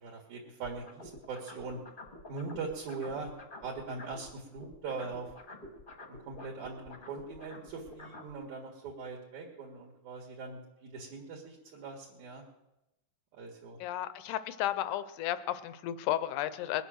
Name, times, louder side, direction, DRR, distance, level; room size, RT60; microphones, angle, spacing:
voice 1, 0.0-1.8 2.3-3.3 3.6-5.3 6.1-12.4 13.3-13.8, right 4 dB, 65° right, -2 dB, 3.2 m, -41 dB
sound 1, 0.6-4.3 4.6-8.3, left 2 dB, 35° left, 0.8 m, -49 dB
voice 2, 13.8-16.8, left 12 dB, 85° left, 13 dB, 2.2 m, -33 dB
21.0 x 8.2 x 6.2 m, 0.94 s
omnidirectional pair, 3.6 m